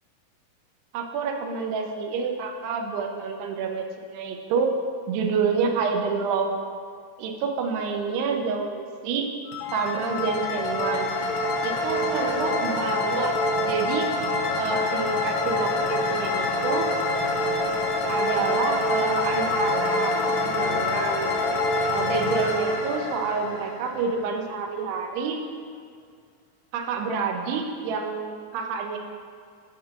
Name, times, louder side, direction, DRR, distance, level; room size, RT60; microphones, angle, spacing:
voice 1, 0.9-4.7 5.1-6.5 7.2-9.3 9.7-11.1 11.6-14.1 14.6-16.9 18.1-21.3 21.9-25.4 26.7-29.0, right 5 dB, 90° right, 3 dB, 2.7 m, -28 dB
sound 1, 9.5-24.3, left 2 dB, 85° left, 2.8 m, -26 dB
7.5 x 3.7 x 5.9 m, 2.1 s
omnidirectional pair, 4.5 m